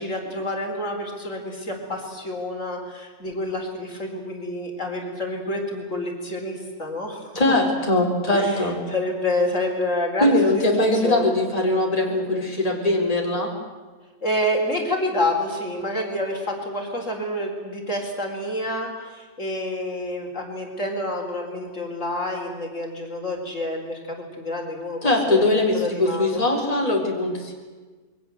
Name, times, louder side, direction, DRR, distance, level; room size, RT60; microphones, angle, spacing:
voice 1, 0.0-7.4 8.3-10.4 10.9-11.3 14.2-25.4 25.7-26.4, left 1 dB, 55° left, 1 dB, 4.5 m, -28 dB
voice 2, 7.3-8.8 10.2-13.5 25.0-27.5, left 2 dB, 25° left, 0 dB, 4.2 m, -21 dB
27.5 x 23.0 x 7.9 m, 1.4 s
omnidirectional pair, 1.5 m